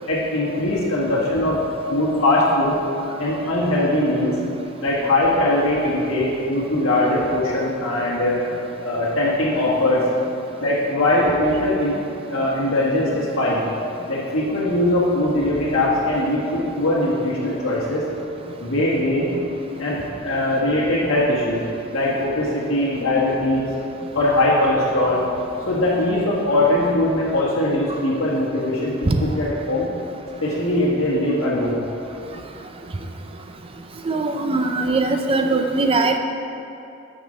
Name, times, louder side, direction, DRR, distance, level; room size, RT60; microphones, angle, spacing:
voice 1, 0.1-1.6 1.9-2.7 3.2-4.4 4.8-8.4 8.8-10.0 10.6-12.0 12.3-13.6 14.1-18.0 18.6-19.3 19.8-21.6 21.9-23.7 24.1-25.2 25.7-28.9 29.2-29.9 30.4-31.8, left 1 dB, 70° left, -7 dB, 1.4 m, -21 dB
voice 2, 34.1-36.2, right 3 dB, 25° right, 4 dB, 0.4 m, -21 dB
9.0 x 5.3 x 4.3 m, 2.8 s
head